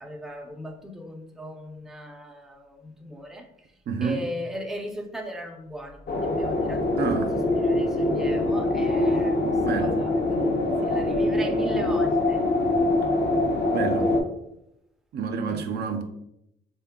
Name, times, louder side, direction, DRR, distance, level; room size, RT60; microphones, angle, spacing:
voice 1, 0.0-3.5 4.0-7.0 7.6-9.4 9.8-10.5 10.8-12.5 15.5-15.6, equal, ahead, 0.5 m, -38 dB
voice 2, 3.9-4.3 7.0-7.3 9.6-10.0 13.7-14.1 15.1-16.0, right 5 dB, 55° right, 0.4 m, -28 dB
sound 1, 6.1-14.2, left 2 dB, 60° left, 0.8 m, -24 dB
3.5 x 2.2 x 3.4 m
cardioid pair, 90°, 20 cm